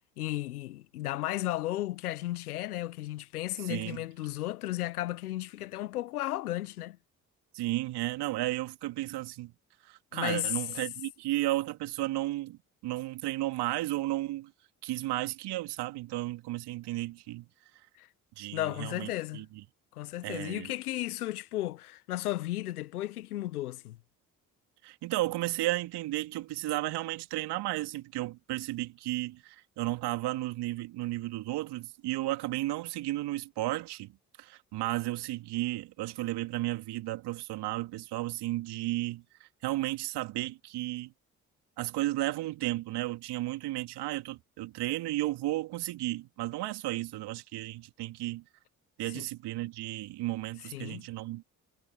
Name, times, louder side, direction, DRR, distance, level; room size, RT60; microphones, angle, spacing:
voice 1, 0.2-7.0 10.1-10.6 18.0-18.1 18.5-19.4 19.9-24.0 49.1-49.2 50.7-51.1, left 15 dB, 80° left, 1.4 m, -34 dB
voice 2, 3.7-4.0 7.5-9.5 9.8-14.5 14.8-17.5 18.4-19.6 20.2-20.7 24.8-34.1 34.4-41.1 41.8-48.4 49.0-51.4, right 17 dB, 60° right, 2.9 m, -33 dB
figure-of-eight pair, 45°, 44 cm